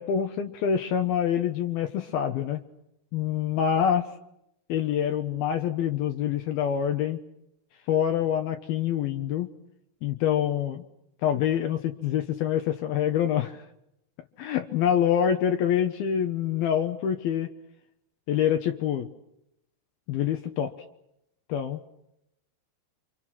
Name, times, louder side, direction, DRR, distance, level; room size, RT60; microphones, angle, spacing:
voice 1, 0.0-2.6 3.1-4.0 4.7-7.2 7.9-9.5 10.0-10.8 11.2-13.6 14.4-17.5 18.3-19.1 20.1-20.7 21.5-21.8, left 9 dB, 70° left, 6 dB, 2.8 m, -26 dB
28.0 x 26.5 x 6.1 m, 0.82 s
omnidirectional pair, 4.9 m